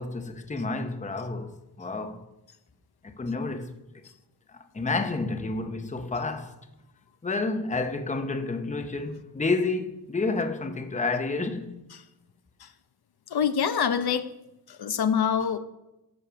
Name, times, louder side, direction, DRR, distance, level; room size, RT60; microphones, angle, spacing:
voice 1, 0.0-2.3 3.0-3.7 4.5-6.5 7.2-11.7, left 3 dB, 20° left, 0.8 m, -30 dB
voice 2, 13.3-14.3 14.7-15.6, left 7 dB, 70° left, 0.7 m, -26 dB
14.5 x 6.5 x 5.7 m
wide cardioid pair, 160°, 39 cm